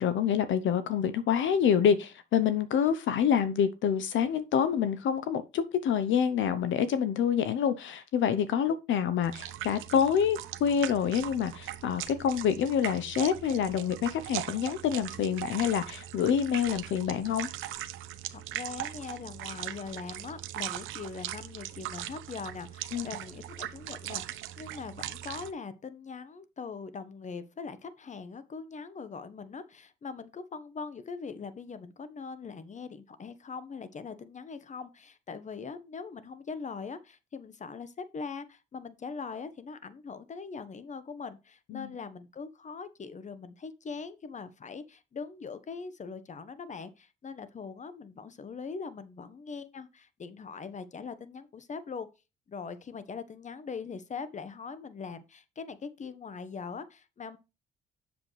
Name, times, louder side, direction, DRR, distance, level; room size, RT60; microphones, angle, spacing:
voice 1, 0.0-17.5 22.9-23.1 41.7-41.9, left 8 dB, 75° left, 0.8 m, -27 dB
sound 1, 9.2-25.5, right 13 dB, 90° right, 0.8 m, -40 dB
voice 2, 18.3-52.1 52.5-57.4, left 5 dB, 40° left, 1.1 m, -41 dB
7.8 x 6.9 x 3.2 m
cardioid pair, 90°, 20 cm